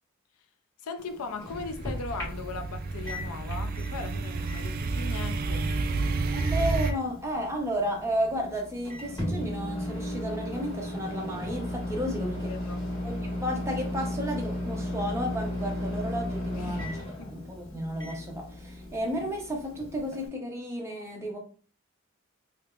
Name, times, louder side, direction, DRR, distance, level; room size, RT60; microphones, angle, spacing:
voice 1, 0.8-5.7 12.5-12.9 16.5-16.9 17.2-17.3, left 4 dB, 85° left, 0.5 m, -38 dB
Microwave oven, 1.0-20.3, left 1 dB, 15° left, 1.5 m, -36 dB
sound 1, 1.5-6.9, right 3 dB, 45° right, 0.3 m, -30 dB
voice 2, 6.3-12.5 13.0-17.0 17.3-21.4, equal, 15° right, 0.7 m, -33 dB
3.4 x 2.8 x 2.4 m
head